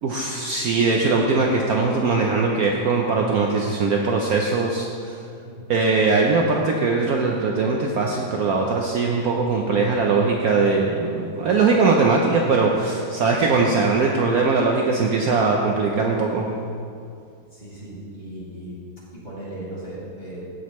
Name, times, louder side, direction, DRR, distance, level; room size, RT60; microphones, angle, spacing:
voice 1, 0.0-5.1 5.7-16.5, right 4 dB, 65° right, 0 dB, 1.0 m, -21 dB
voice 2, 17.5-18.8 19.1-20.4, right 1 dB, 25° left, -8 dB, 2.5 m, -37 dB
15.5 x 6.2 x 3.1 m, 2.3 s
omnidirectional pair, 1.9 m